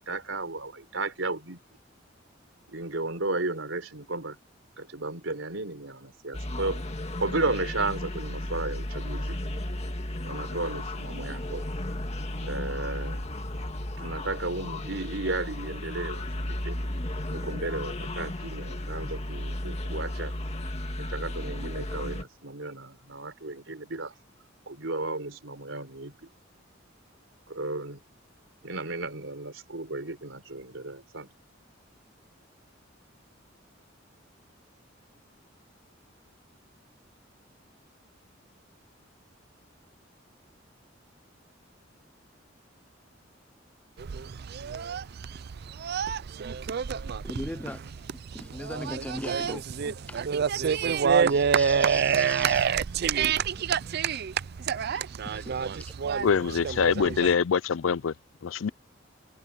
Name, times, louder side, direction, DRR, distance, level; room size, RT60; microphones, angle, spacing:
voice 1, 0.0-1.6 2.7-4.4 4.8-6.8 7.2-9.4 10.2-11.6 12.4-13.2 14.0-16.8 17.3-20.3 21.0-24.1 24.7-26.3 27.5-28.0 28.6-31.3, right 2 dB, 80° right, 4.1 m, -34 dB
sound 1, 6.3-22.2, left 1 dB, 35° left, 1.9 m, -34 dB
sound 2, 44.0-57.3, right 7 dB, 55° right, 0.4 m, -28 dB
voice 2, 47.2-47.8 48.3-50.2 50.6-52.7 54.9-55.9, left 1 dB, 5° left, 0.5 m, -39 dB
voice 3, 56.2-58.1 58.4-58.7, left 6 dB, 85° left, 0.5 m, -24 dB
head